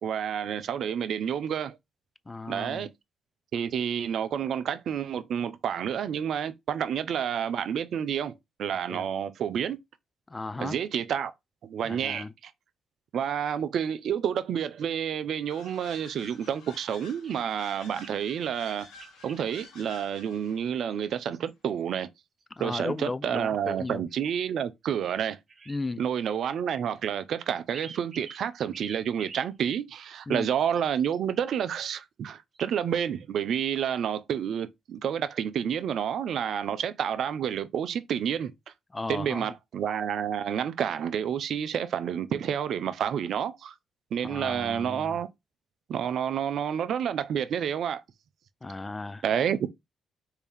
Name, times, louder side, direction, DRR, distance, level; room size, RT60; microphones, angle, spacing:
voice 1, 0.0-1.8 2.5-2.9 3.5-9.8 10.6-11.3 11.6-12.5 13.1-18.9 19.2-22.1 22.6-25.4 26.0-38.5 39.1-43.8 44.1-45.3 45.9-48.0 49.2-49.7, right 8 dB, 65° right, 0.4 m, -29 dB
voice 2, 2.3-2.9 8.9-9.1 10.3-10.8 11.8-12.3 22.6-24.0 25.7-26.0 30.3-30.5 38.9-39.5 44.2-45.2 48.6-49.2, left 3 dB, 25° left, 0.4 m, -35 dB
sound 1, 15.5-20.7, left 3 dB, 80° left, 1.1 m, -51 dB
sound 2, 15.6-15.8 16.3-16.5 17.2-18.1 18.4-19.4 20.9-21.8 22.4-23.0 23.9-24.1 24.4-24.5 25.5-25.8 26.2-26.8 27.7-28.4 28.7-29.5 30.4-31.2 32.5-33.0, right 5 dB, 50° right, 0.8 m, -49 dB
3.4 x 2.7 x 3.3 m
supercardioid pair, 50°, 0 cm